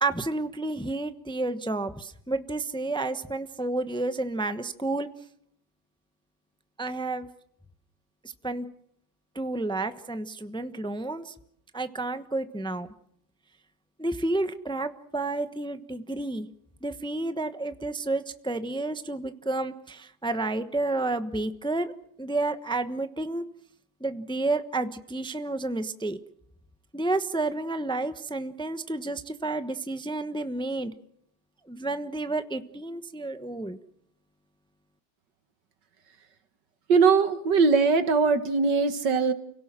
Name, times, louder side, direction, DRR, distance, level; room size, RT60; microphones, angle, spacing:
voice 1, 0.0-5.1 6.8-7.3 8.4-8.7 9.3-11.3 11.7-12.9 14.0-16.5 16.8-21.9 22.2-23.4 24.0-26.2 26.9-30.9 31.7-33.8, right 2 dB, 5° left, 10 dB, 0.8 m, -30 dB
voice 2, 36.9-39.3, right 5 dB, 90° right, 10 dB, 2.3 m, -21 dB
29.5 x 17.5 x 7.6 m, 0.71 s
omnidirectional pair, 1.8 m